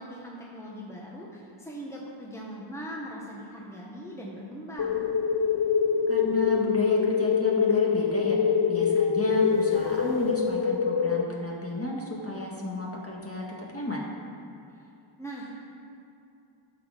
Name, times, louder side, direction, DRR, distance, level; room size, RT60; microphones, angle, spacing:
voice 1, 0.0-5.1 14.8-14.9 15.2-15.5, equal, 5° left, -3 dB, 1.3 m, -40 dB
sound 1, 4.8-11.2, left 6 dB, 55° left, 0.5 m, -24 dB
voice 2, 6.1-14.1, left 1 dB, 30° left, -3 dB, 1.7 m, -33 dB
11.0 x 6.5 x 5.1 m, 2.7 s
wide cardioid pair, 50°, 47 cm